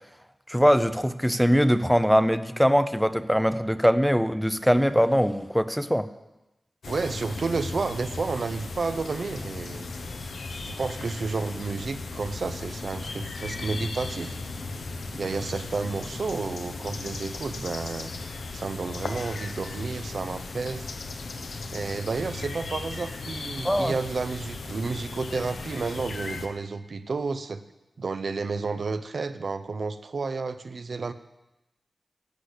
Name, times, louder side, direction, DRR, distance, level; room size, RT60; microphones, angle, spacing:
voice 1, 0.5-6.1 23.6-23.9, equal, ahead, 12 dB, 0.6 m, -22 dB
sound 1, 6.8-26.5, left 3 dB, 85° left, 1.0 m, -36 dB
voice 2, 6.9-9.9 10.6-14.4 15.1-18.1 18.5-20.9 21.7-27.6 28.0-31.1, right 4 dB, 70° right, 10 dB, 0.7 m, -31 dB
11.5 x 8.1 x 8.2 m, 0.99 s
wide cardioid pair, 65°, 0 cm